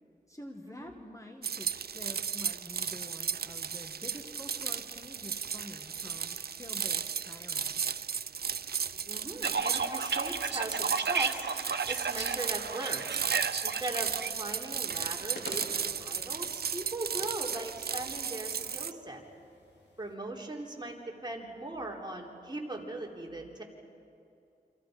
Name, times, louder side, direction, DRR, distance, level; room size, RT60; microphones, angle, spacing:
voice 1, 0.3-7.8, left 1 dB, 20° left, 2 dB, 1.8 m, -48 dB
sound 1, 1.4-18.9, right 7 dB, 65° right, 0.5 m, -35 dB
voice 2, 9.1-11.5 11.9-13.0 13.6-19.2 20.0-23.6, right 2 dB, 25° right, 0 dB, 3.5 m, -39 dB
sound 2, 9.4-14.3, right 5 dB, 85° right, 0.9 m, -33 dB
sound 3, 13.1-20.1, left 2 dB, 80° left, 3.8 m, -52 dB
29.0 x 26.0 x 5.2 m, 2.6 s
wide cardioid pair, 75°, 17 cm